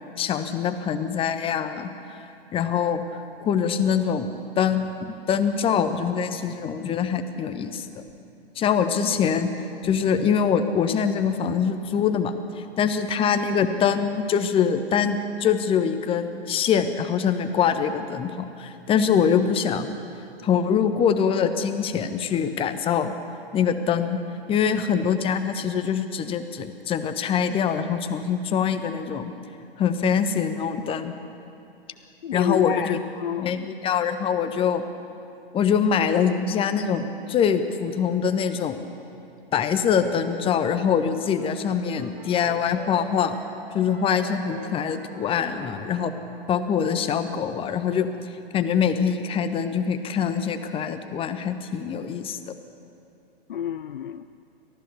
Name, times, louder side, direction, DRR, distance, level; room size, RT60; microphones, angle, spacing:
voice 1, 0.2-2.2 2.5-4.3 4.6-8.0 8.6-9.5 9.8-19.9 20.4-23.1 23.5-24.2 24.5-29.3 29.8-31.1 32.3-33.0 33.4-34.8 35.5-38.8 39.5-43.4 43.7-46.1 46.5-48.1 48.5-52.5, left 7 dB, 20° left, 9 dB, 1.1 m, -24 dB
voice 2, 32.2-33.7 53.5-54.2, left 9 dB, 60° left, 11 dB, 0.6 m, -30 dB
sound 1, 41.1-46.3, right 3 dB, 55° right, 3.3 m, -44 dB
29.5 x 14.5 x 7.0 m, 2.7 s
figure-of-eight pair, 105°, 31 cm